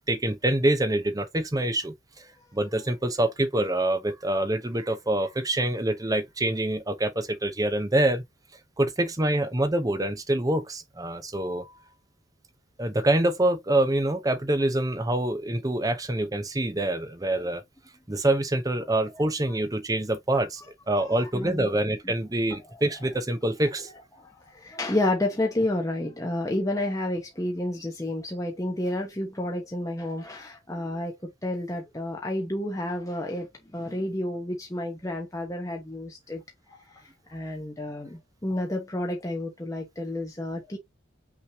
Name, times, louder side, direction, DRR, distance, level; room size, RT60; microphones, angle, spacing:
voice 1, 0.0-1.9 2.5-8.2 8.8-11.7 12.8-17.6 18.1-23.9, right 1 dB, 20° right, 0.7 m, -26 dB
voice 2, 21.3-21.7 24.2-36.4 37.3-40.8, left 1 dB, 15° left, 0.9 m, -30 dB
5.9 x 3.1 x 2.8 m
head